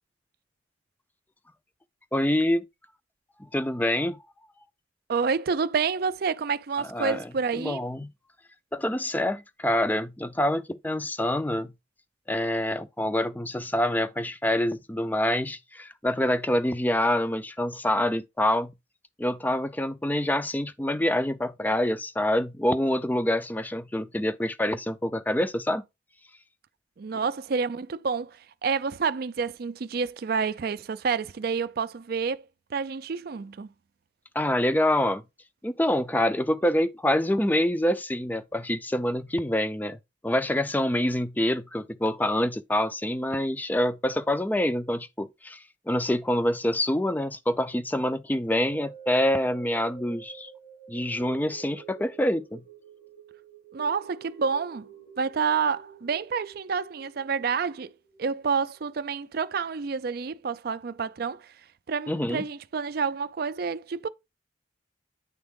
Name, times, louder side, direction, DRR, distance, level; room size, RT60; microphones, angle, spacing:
voice 1, 2.1-2.7 3.5-4.2 6.9-7.3 7.5-8.1 8.7-11.7 12.3-18.7 19.2-25.8 34.3-35.2 35.6-45.6 45.9-50.5 50.9-52.6 62.1-62.4, left 1 dB, 10° left, 0.4 m, -26 dB
voice 2, 5.1-7.8 27.0-32.4 32.7-33.7 53.7-54.9 55.2-57.9 58.2-61.5 61.9-64.1, right 5 dB, 50° right, 0.4 m, -29 dB
sound 1, 48.6-58.9 59.4-59.5, right 8 dB, 90° left, 5.2 m, -49 dB
9.5 x 3.6 x 3.6 m
head